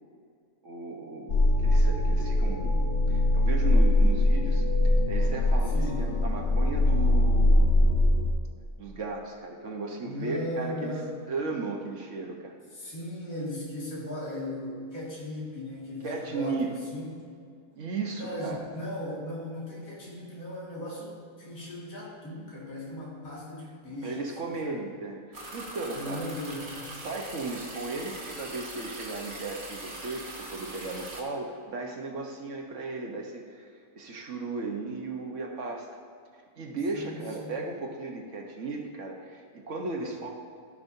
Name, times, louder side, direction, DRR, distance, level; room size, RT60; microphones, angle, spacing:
voice 1, 0.6-2.8 3.1-4.6 5.1-7.9 8.8-11.0 11.3-12.5 16.0-16.7 17.7-18.6 24.0-26.3 27.0-33.7 33.9-35.9 36.6-40.3, right 3 dB, 65° right, 1 dB, 1.4 m, -36 dB
sound 1, 1.3-8.3, left 1 dB, 60° left, 1.1 m, -22 dB
voice 2, 5.7-6.1 10.0-11.3 12.7-17.1 18.2-24.2 24.6-24.7 25.9-26.9 36.9-37.6 40.0-40.1, left 1 dB, 80° left, -5 dB, 2.6 m, -37 dB
sound 2, 25.3-31.2, right 1 dB, 40° right, 1.3 m, -41 dB
16.0 x 5.8 x 2.7 m, 2.2 s
omnidirectional pair, 1.4 m